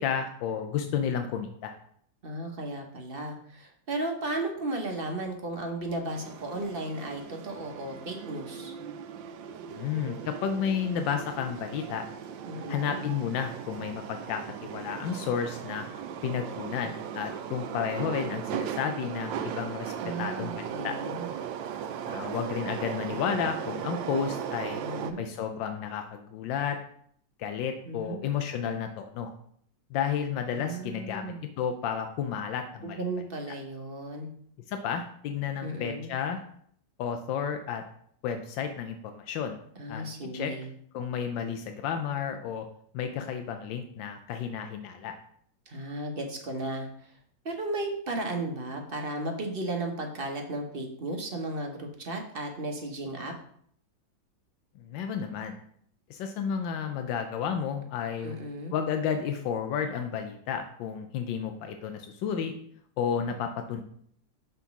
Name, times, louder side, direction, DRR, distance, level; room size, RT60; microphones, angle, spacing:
voice 1, 0.0-1.8 9.7-12.0 12.7-15.9 16.2-20.9 22.1-24.8 25.2-26.8 27.4-29.3 29.9-33.0 34.7-36.4 37.0-37.8 38.2-39.6 39.9-40.0 40.3-40.5 40.9-42.7 42.9-45.1 54.8-55.6 56.1-58.4 58.7-62.5 63.0-63.8, left 7 dB, 90° left, 6 dB, 1.4 m, -32 dB
voice 2, 2.2-8.7 12.4-13.0 20.0-21.3 24.8-25.3 27.8-28.3 30.5-31.4 32.8-34.3 35.6-36.1 39.8-40.7 45.7-47.1 47.4-53.3 58.2-58.7, right 2 dB, 40° right, 2 dB, 0.9 m, -35 dB
sound 1, 6.1-25.1, right 8 dB, 90° right, 1.3 m, -37 dB
6.0 x 4.0 x 5.8 m, 0.63 s
omnidirectional pair, 2.0 m